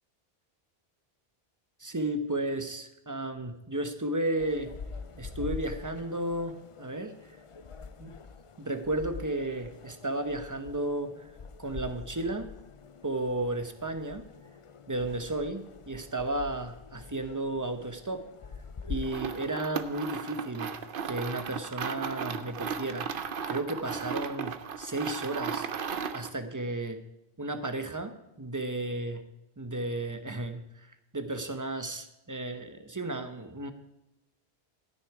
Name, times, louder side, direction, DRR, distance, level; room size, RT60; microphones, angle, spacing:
voice 1, 1.8-4.7 5.2-7.1 8.0-8.1 8.6-11.1 11.6-12.5 13.0-14.3 14.9-18.2 18.9-20.7 21.0-23.1 23.5-25.7 26.1-27.0 27.4-29.2 29.6-30.6 31.1-33.7, right 2 dB, 20° right, 7 dB, 0.9 m, -33 dB
sound 1, 4.4-20.0, left 5 dB, 40° left, 0.5 m, -45 dB
sound 2, 19.0-26.4, right 6 dB, 60° right, 0.9 m, -36 dB
14.0 x 9.5 x 4.8 m, 0.91 s
omnidirectional pair, 1.0 m